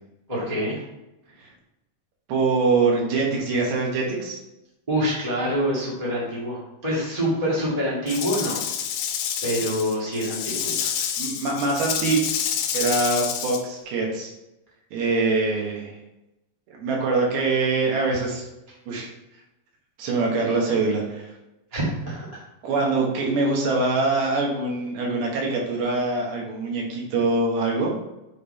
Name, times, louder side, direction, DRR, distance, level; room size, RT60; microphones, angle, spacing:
voice 1, 0.3-0.8 4.9-8.6 9.4-10.9 21.7-22.4, equal, 25° right, -7 dB, 0.7 m, -26 dB
voice 2, 2.3-4.4 11.2-12.2 12.7-14.3 14.9-15.9 16.7-18.5 18.9-19.1 20.0-21.3 22.6-27.9, right 3 dB, 85° right, -1 dB, 3.3 m, -24 dB
Rattle / Rattle (instrument), 8.1-13.6, left 8 dB, 80° left, 2.4 m, -28 dB
7.6 x 3.5 x 4.3 m, 0.93 s
omnidirectional pair, 4.3 m